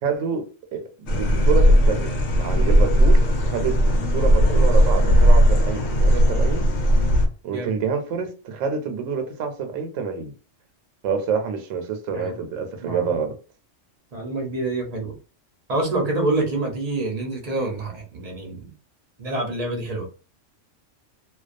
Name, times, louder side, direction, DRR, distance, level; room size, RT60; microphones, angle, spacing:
voice 1, 0.0-6.6 7.4-10.3 11.0-13.3, right 6 dB, 80° right, 0.9 m, -27 dB
sound 1, 1.1-7.3, equal, 90° left, 1.0 m, -17 dB
voice 2, 12.8-13.2 14.1-15.1 15.7-18.7 19.2-20.1, right 2 dB, 40° right, 0.6 m, -27 dB
2.3 x 2.2 x 2.5 m
omnidirectional pair, 1.3 m